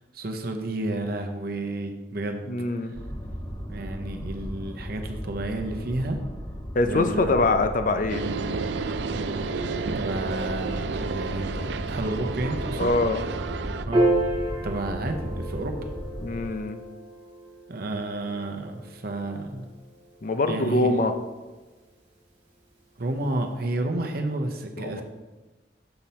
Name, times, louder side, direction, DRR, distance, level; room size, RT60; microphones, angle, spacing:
voice 1, 0.1-2.5 3.7-6.2 6.8-7.5 9.9-12.9 13.8-14.1 14.6-15.9 17.7-19.6 20.5-20.9 23.0-25.0, right 2 dB, 60° right, 4 dB, 0.8 m, -31 dB
voice 2, 2.5-2.9 6.7-8.2 12.8-13.2 16.2-16.8 20.2-21.1 24.8-25.0, left 2 dB, 50° left, 8 dB, 0.5 m, -24 dB
sound 1, 2.9-16.4, equal, 15° left, 0.9 m, -36 dB
sound 2, 8.1-13.8, right 4 dB, 80° right, 0.4 m, -31 dB
Piano, 13.9-20.5, right 1 dB, 30° right, 2.3 m, -30 dB
6.8 x 5.8 x 4.2 m, 1.2 s
head